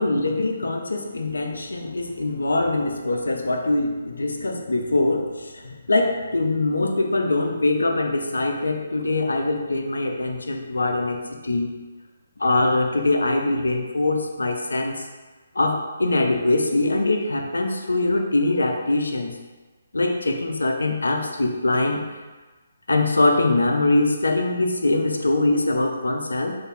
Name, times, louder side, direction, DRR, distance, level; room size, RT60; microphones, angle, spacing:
voice 1, 0.0-11.7 12.4-15.0 15.6-19.3 19.9-22.0 22.9-26.6, left 2 dB, 70° left, 3 dB, 0.5 m, -23 dB
3.3 x 2.6 x 4.0 m, 1.2 s
figure-of-eight pair, 140°, 0 cm